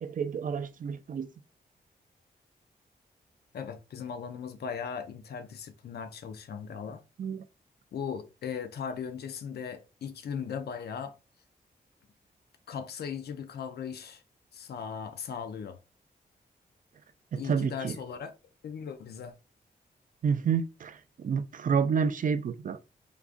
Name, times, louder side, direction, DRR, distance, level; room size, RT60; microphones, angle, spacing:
voice 1, 0.0-1.3 7.2-7.4 17.3-18.0 20.2-22.8, right 6 dB, 55° right, 0.4 m, -29 dB
voice 2, 3.5-7.0 7.9-11.1 12.7-14.2 14.5-15.8 17.4-18.3 18.6-19.3, left 7 dB, 85° left, 0.5 m, -38 dB
4.8 x 2.3 x 2.5 m
wide cardioid pair, 85°, 16 cm